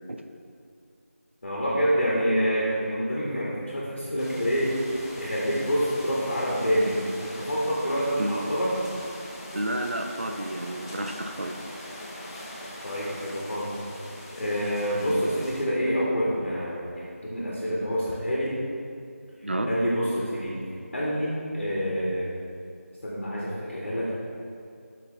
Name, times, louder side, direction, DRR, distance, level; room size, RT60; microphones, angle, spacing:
voice 1, 1.4-4.8 5.2-8.7 12.8-13.8 14.4-18.5 19.7-20.5 20.9-22.4 23.0-24.1, equal, 55° left, -6 dB, 2.0 m, -27 dB
sound 1, 4.2-15.6, left 1 dB, 20° left, 1.0 m, -41 dB
voice 2, 9.5-11.6 19.4-19.7, right 1 dB, 50° right, 5 dB, 0.6 m, -31 dB
12.0 x 6.0 x 3.5 m, 2.4 s
figure-of-eight pair, 170°, 8 cm